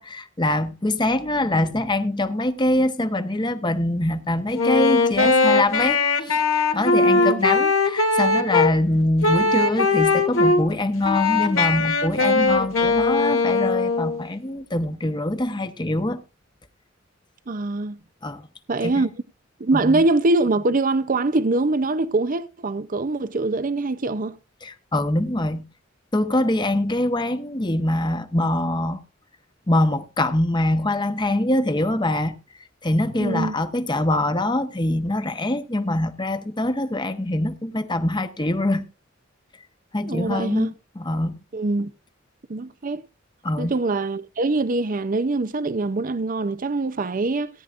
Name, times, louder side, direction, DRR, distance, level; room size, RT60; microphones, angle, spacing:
voice 1, 0.0-16.2 18.2-18.4 18.8-19.0 19.7-20.0 24.6-25.6 26.1-29.0 29.7-32.3 32.8-38.8 39.9-41.4 43.4-43.7, left 1 dB, 20° left, 1.0 m, -24 dB
Wind instrument woodwind instrument, 4.5-8.7 9.2-10.6 11.0-14.2, left 3 dB, 85° left, 2.6 m, -20 dB
voice 2, 7.0-7.4 17.5-18.0 18.7-19.1 19.6-24.4 33.2-33.5 40.0-40.7 41.5-41.9 42.5-43.0 43.6-47.5, right 2 dB, 40° right, 0.6 m, -23 dB
17.5 x 10.0 x 2.5 m
head